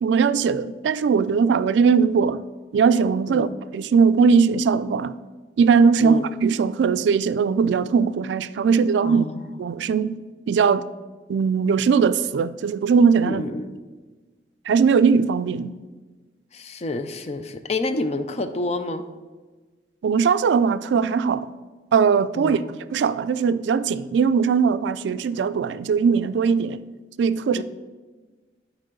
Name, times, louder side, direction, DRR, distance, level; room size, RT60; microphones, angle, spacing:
voice 1, 0.0-2.4 2.7-5.1 5.6-9.3 9.6-10.2 10.5-10.9 11.3-13.4 14.7-15.7 20.0-21.5 21.9-22.6 22.9-26.8 27.2-27.6, right 5 dB, 85° right, 0.3 m, -20 dB
voice 2, 9.0-9.5 13.2-13.7 16.5-19.1 22.3-22.7 27.6-27.7, left 2 dB, 35° left, 0.4 m, -29 dB
12.0 x 4.6 x 3.8 m
head